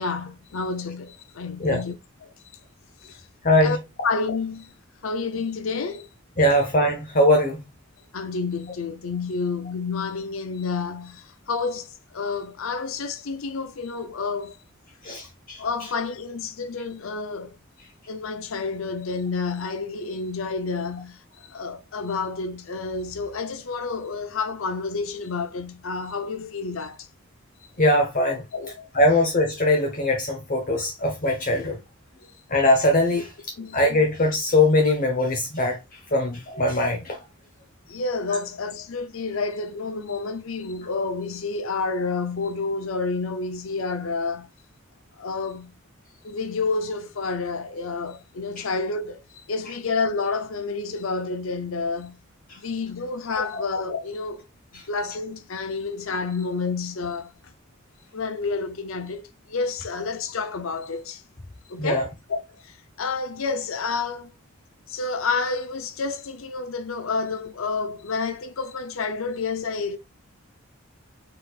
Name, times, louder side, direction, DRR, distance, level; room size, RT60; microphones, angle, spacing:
voice 1, 0.0-1.9 2.2-2.3 3.6-3.8 4.0-4.7 5.0-6.1 8.1-14.6 15.6-17.6 18.1-27.1 28.5-28.9 33.6-33.8 37.9-44.5 45.2-45.7 46.2-49.2 49.5-52.2 52.6-54.4 54.9-57.3 58.1-61.2 61.7-64.3 64.9-70.0, left 4 dB, 75° left, 0.6 m, -29 dB
voice 2, 3.4-3.8 6.4-7.6 15.0-15.6 27.8-28.4 28.9-31.8 32.5-33.3 33.7-35.8 36.1-37.2 48.6-48.7 53.3-53.6 54.7-54.8 56.6-56.7 61.8-62.1, left 1 dB, 40° left, 1.0 m, -21 dB
4.4 x 4.3 x 2.3 m
head